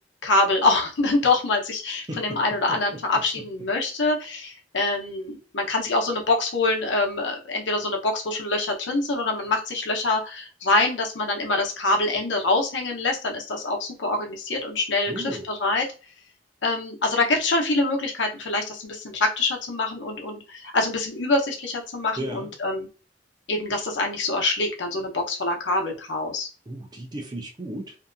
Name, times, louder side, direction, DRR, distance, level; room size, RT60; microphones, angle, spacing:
voice 1, 0.2-15.9 16.6-22.9 23.5-26.5, left 2 dB, 90° left, 0.8 m, -25 dB
voice 2, 2.1-2.4 2.7-2.8 15.1-15.5 22.2-22.5 26.7-28.0, right 1 dB, 25° right, 0.5 m, -34 dB
2.7 x 2.5 x 2.3 m
head